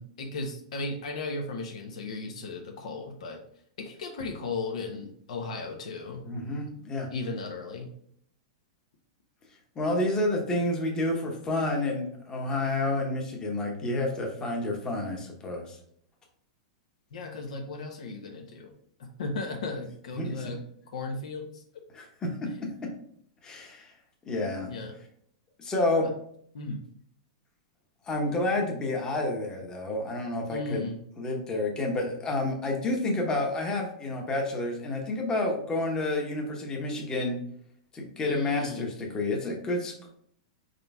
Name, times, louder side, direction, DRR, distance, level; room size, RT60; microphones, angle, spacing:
voice 1, 0.0-3.4 3.8-6.2 7.1-7.9 17.1-18.7 19.2-20.6 20.9-21.6 24.7-24.9 26.5-26.8 30.5-31.0 38.2-38.9, left 3 dB, 80° left, 2 dB, 0.7 m, -36 dB
voice 2, 6.2-7.1 9.8-15.8 20.2-20.4 21.9-22.4 23.4-23.9 24.2-24.7 25.6-26.1 28.1-30.9 31.2-37.4 37.9-40.1, left 2 dB, 20° left, 1 dB, 0.9 m, -29 dB
4.3 x 3.8 x 2.3 m, 0.65 s
hypercardioid pair, 140°, 4 cm